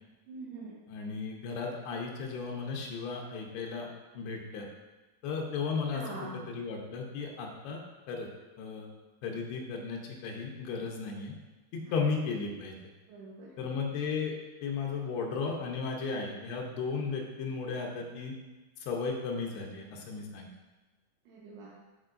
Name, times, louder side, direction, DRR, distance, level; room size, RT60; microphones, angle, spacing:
voice 1, 0.3-0.8 5.9-6.4 11.9-12.0 13.1-13.5 21.3-21.7, right 3 dB, 85° right, -7 dB, 3.3 m, -44 dB
voice 2, 0.9-3.9 4.2-4.7 5.2-7.8 8.1-8.3 8.6-8.9 9.2-11.3 11.7-12.8 13.6-14.3 14.6-18.3 18.8-20.5, left 5 dB, 85° left, 0 dB, 3.0 m, -35 dB
13.0 x 4.8 x 2.6 m, 1.2 s
omnidirectional pair, 4.6 m